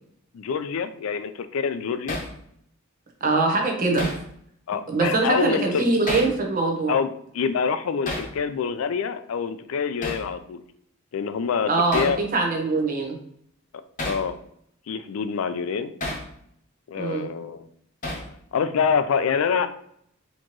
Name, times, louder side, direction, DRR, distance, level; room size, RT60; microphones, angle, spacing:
voice 1, 0.3-2.2 4.7-5.9 6.9-7.1 7.3-10.6 11.1-12.2 14.0-14.4 14.9-15.9 16.9-17.7 18.5-19.7, left 6 dB, 80° left, 11 dB, 0.4 m, -26 dB
Hammer, 2.1-2.3 4.0-4.3 6.1-6.4 8.1-8.3 10.0-10.3 11.9-12.2 14.0-14.3 16.0-16.3 18.0-18.3, left 1 dB, 40° left, 0.9 m, -31 dB
voice 2, 3.2-4.1 4.9-7.0 11.7-13.2 17.0-17.3, right 3 dB, 40° right, 1 dB, 0.9 m, -23 dB
4.3 x 3.0 x 3.0 m, 0.68 s
head